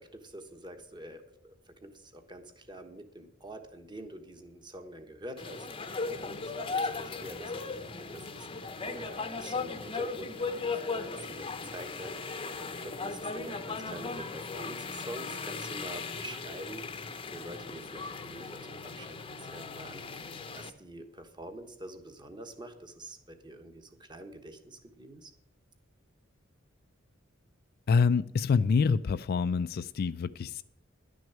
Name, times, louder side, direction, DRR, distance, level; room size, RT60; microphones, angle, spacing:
voice 1, 0.0-6.7 6.9-16.8 17.3-20.2 20.5-25.3, right 1 dB, 25° right, 7 dB, 1.2 m, -46 dB
sound 1, 5.4-20.7, left 4 dB, 25° left, 0.7 m, -37 dB
voice 2, 27.9-30.6, left 5 dB, 50° left, 13 dB, 0.3 m, -26 dB
11.0 x 6.2 x 8.5 m, 0.74 s
head